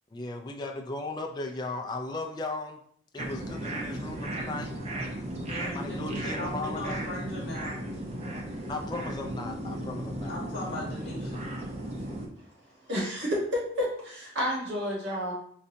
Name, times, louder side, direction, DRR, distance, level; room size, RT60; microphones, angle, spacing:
voice 1, 0.1-2.8 3.1-4.7 5.6-7.1 8.7-10.3, left 2 dB, 25° left, 2 dB, 0.3 m, -36 dB
sound 1, 3.2-12.3, right 1 dB, 35° right, 0.5 m, -35 dB
voice 2, 5.5-7.8 10.3-11.4, left 1 dB, 65° left, -5 dB, 0.9 m, -38 dB
voice 3, 12.9-15.3, equal, 80° right, -4 dB, 1.3 m, -30 dB
3.9 x 2.2 x 2.6 m, 0.62 s
head